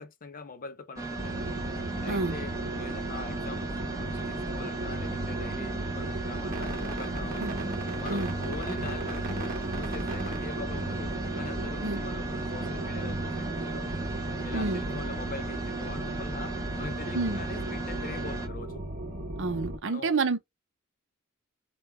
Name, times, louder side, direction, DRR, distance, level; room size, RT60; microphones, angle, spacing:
voice 1, 0.0-1.5 2.0-3.7 4.0-7.5 8.0-14.0 14.4-18.8 19.8-20.1, left 4 dB, 40° left, 0.6 m, -43 dB
sound 1, 1.0-18.5, right 3 dB, 15° right, 1.0 m, -37 dB
sound 2, 1.2-19.8, right 1 dB, 45° right, 1.2 m, -35 dB
voice 2, 19.4-20.4, right 3 dB, 60° right, 0.6 m, -29 dB
3.6 x 2.3 x 4.2 m
head